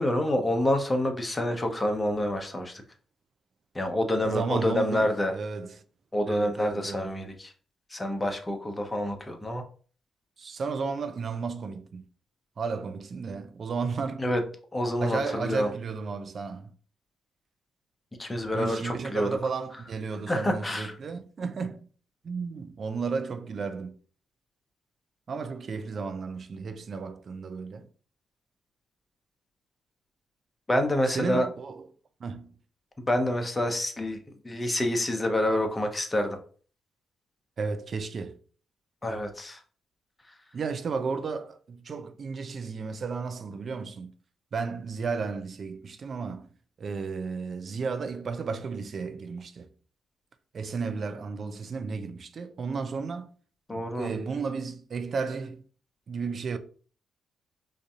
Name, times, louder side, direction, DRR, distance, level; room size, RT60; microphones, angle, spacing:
voice 1, 0.0-2.8 3.7-5.3 6.1-7.5 7.9-9.6 14.2-14.4 14.7-15.7 18.2-19.3 20.3-20.9 30.7-31.5 33.0-34.2 34.4-36.4 39.0-39.6 53.7-54.1, left 1 dB, 25° left, 0.8 m, -27 dB
voice 2, 4.2-5.8 6.3-7.1 10.4-12.0 12.6-14.2 15.0-16.7 18.5-21.9 22.2-24.0 25.3-27.9 31.1-31.9 32.2-32.5 37.6-38.4 40.5-44.1 44.5-46.5 46.8-49.7 50.5-53.3 53.7-55.6 56.1-56.6, right 5 dB, 55° right, 0.4 m, -33 dB
5.0 x 2.6 x 2.4 m
hypercardioid pair, 40°, 0 cm